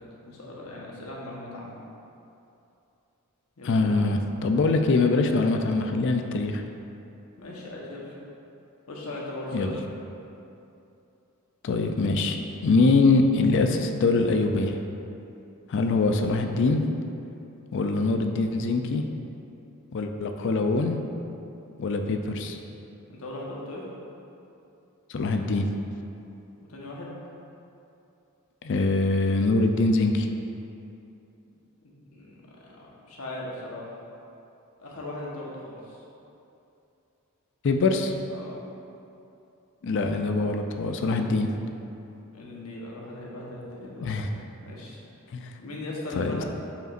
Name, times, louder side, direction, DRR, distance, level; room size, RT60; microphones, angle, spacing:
voice 1, 0.2-1.7 3.6-4.0 7.4-8.1 8.9-9.7 23.1-23.8 26.7-27.1 31.8-33.9 34.8-36.0 38.3-38.6 42.3-44.1 44.6-45.0 45.6-46.4, left 1 dB, 80° left, -4 dB, 1.1 m, -38 dB
voice 2, 3.6-6.6 9.5-9.8 11.6-12.4 12.6-14.8 15.7-16.8 17.7-19.0 19.9-21.0 21.8-22.6 25.1-25.7 28.6-30.3 37.6-38.1 39.8-41.5 44.0-44.3 45.3-45.5 46.1-46.4, left 3 dB, 55° left, 5 dB, 0.4 m, -23 dB
7.7 x 5.1 x 2.5 m, 2.8 s
head